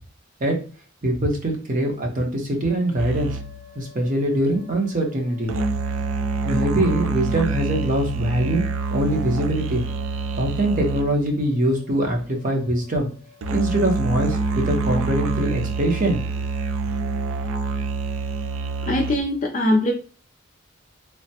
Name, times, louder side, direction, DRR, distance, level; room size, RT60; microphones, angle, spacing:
voice 1, 1.0-3.3 3.7-5.5 6.4-8.6 8.9-9.8 10.3-13.1 13.5-16.2, right 1 dB, 40° right, 2 dB, 0.7 m, -23 dB
sound 1, 3.0-11.4 13.4-19.2, right 3 dB, 90° right, 0.4 m, -26 dB
voice 2, 18.8-19.9, left 1 dB, 40° left, 1 dB, 0.4 m, -21 dB
3.2 x 2.1 x 2.7 m, 0.37 s
head